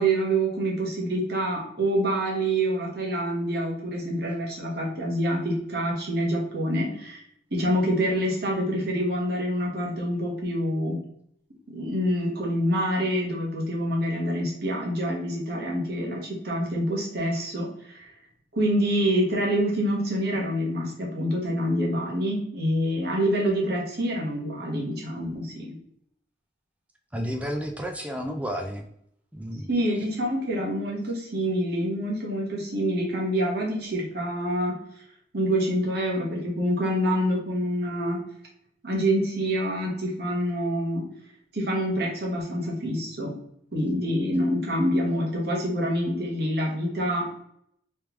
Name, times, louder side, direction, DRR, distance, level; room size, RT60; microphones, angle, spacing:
voice 1, 0.0-7.2 7.5-11.0 11.7-18.1 18.5-25.7 29.7-34.8 35.3-38.2 38.8-41.0 41.5-43.3 43.7-47.4, equal, 55° right, -2 dB, 1.2 m, -26 dB
voice 2, 27.1-28.9 29.3-29.7, equal, 5° right, 3 dB, 0.3 m, -31 dB
3.3 x 3.2 x 3.0 m, 0.70 s
head